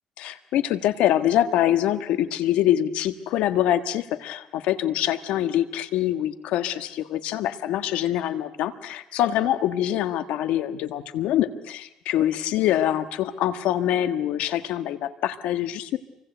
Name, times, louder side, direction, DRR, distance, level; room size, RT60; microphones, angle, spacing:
voice 1, 0.2-16.0, left 12 dB, 90° left, 11 dB, 1.5 m, -24 dB
28.5 x 24.5 x 8.0 m, 0.82 s
cardioid pair, 120°, 2 cm